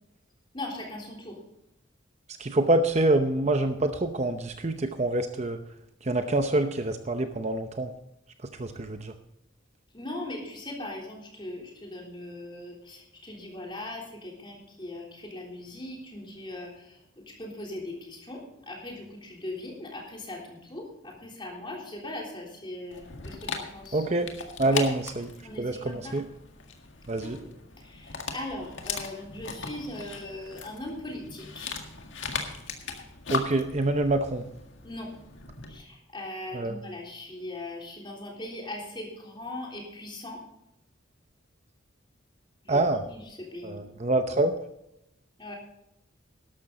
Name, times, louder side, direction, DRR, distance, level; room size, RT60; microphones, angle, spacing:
voice 1, 0.5-1.4 9.9-24.1 24.7-24.8 25.4-26.2 27.2-27.5 27.8-31.8 34.8-35.1 35.7-40.4 42.6-43.8 45.4-45.5, left 1 dB, 25° left, -1 dB, 3.5 m, -40 dB
voice 2, 2.4-5.6 6.0-7.9 8.6-9.1 23.9-24.3 24.6-25.3 25.6-26.2 27.1-27.4 33.3-34.4 36.5-36.8 42.7-43.0 43.6-44.5, right 2 dB, 35° right, 7 dB, 0.7 m, -26 dB
Dog, 22.9-35.8, left 5 dB, 65° left, 1.9 m, -38 dB
13.0 x 12.0 x 4.0 m, 0.83 s
head